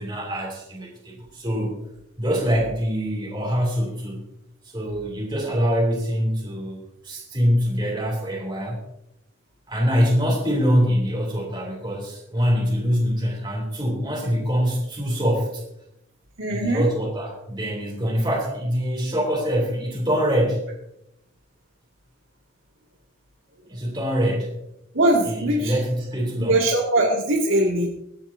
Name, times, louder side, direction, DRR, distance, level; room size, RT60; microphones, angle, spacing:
voice 1, 0.0-1.8 2.2-4.2 4.6-8.8 9.7-15.6 16.5-20.7 23.7-24.6 25.3-26.6, equal, 25° right, -3 dB, 3.0 m, -24 dB
voice 2, 16.4-16.9 24.9-25.8 26.5-27.9, right 1 dB, 90° right, -3 dB, 2.3 m, -21 dB
23.0 x 8.9 x 2.8 m, 0.83 s
head